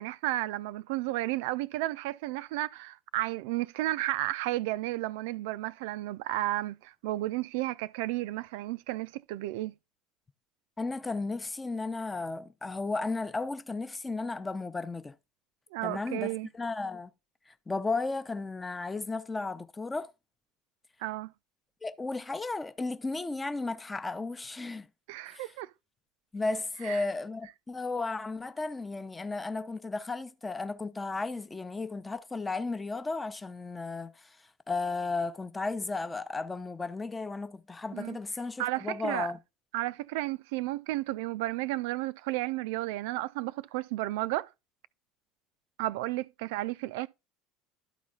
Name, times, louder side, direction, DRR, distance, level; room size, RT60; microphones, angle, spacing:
voice 1, 0.0-9.7 15.7-16.5 21.0-21.3 25.1-25.7 26.8-27.0 37.9-38.2 38.6-39.3 39.7-44.5 45.8-47.1, right 17 dB, 65° right, 0.3 m, -33 dB
voice 2, 10.8-15.2 15.8-17.1 17.5-20.1 21.8-24.9 25.3-25.5 26.3-39.4, left 3 dB, 15° left, 0.7 m, -34 dB
12.0 x 4.1 x 3.7 m
figure-of-eight pair, 65°, 0 cm